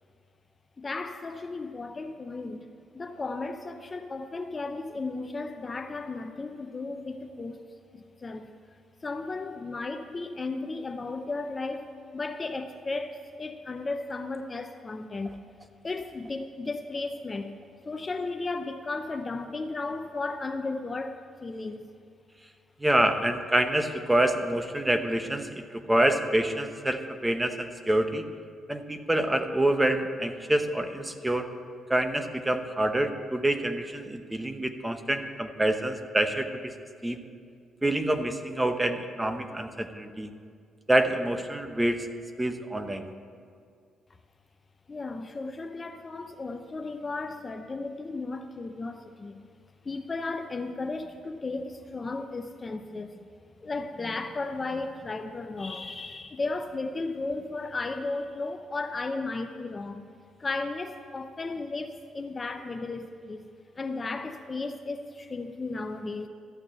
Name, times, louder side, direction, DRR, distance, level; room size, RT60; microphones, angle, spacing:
voice 1, 0.8-2.7 2.9-7.6 7.9-8.5 9.0-15.4 15.8-17.5 17.8-21.9 44.9-49.4 49.8-53.3 53.6-60.1 60.4-63.5 63.8-66.3, left 3 dB, 30° left, 8 dB, 0.7 m, -35 dB
voice 2, 22.8-25.6 25.9-28.2 28.7-31.5 31.9-36.7 37.0-37.2 37.8-40.3 40.9-42.1 42.4-43.1, right 1 dB, 10° right, 8 dB, 0.9 m, -26 dB
13.0 x 6.5 x 8.7 m, 2.2 s
cardioid pair, 90°, 0 cm